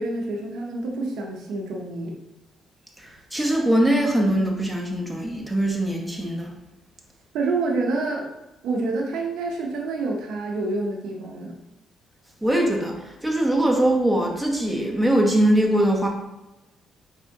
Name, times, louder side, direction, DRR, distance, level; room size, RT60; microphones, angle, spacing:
voice 1, 0.0-2.2 7.3-8.3 8.6-11.5, right 3 dB, 85° right, 0 dB, 0.6 m, -27 dB
voice 2, 3.3-6.5 12.4-16.1, right 1 dB, ahead, -1 dB, 0.8 m, -21 dB
4.3 x 3.4 x 2.7 m, 0.99 s
cardioid pair, 90°, 0 cm